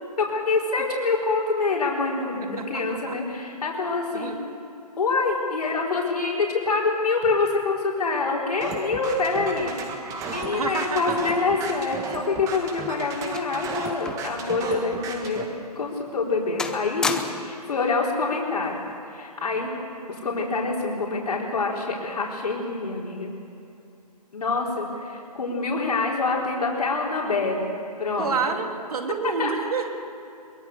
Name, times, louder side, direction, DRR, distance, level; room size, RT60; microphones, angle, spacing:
voice 1, 0.2-4.3 5.0-9.7 10.3-15.5 15.7-18.8 19.0-19.7 20.1-23.3 24.3-28.6 29.4-29.5, left 3 dB, 65° left, -2 dB, 4.5 m, -26 dB
voice 2, 2.6-3.2 4.1-4.4 10.2-11.3 28.2-29.9, right 5 dB, 60° right, 5 dB, 2.7 m, -29 dB
sound 1, 8.6-15.4, right 4 dB, 15° right, 1.8 m, -34 dB
sound 2, 12.3-14.4 14.7-14.9 15.5-15.6 16.1-16.3 16.6-17.6 18.6-18.9, left 4 dB, 5° left, 0.5 m, -33 dB
22.5 x 21.5 x 6.9 m, 2.7 s
figure-of-eight pair, 145°, 21 cm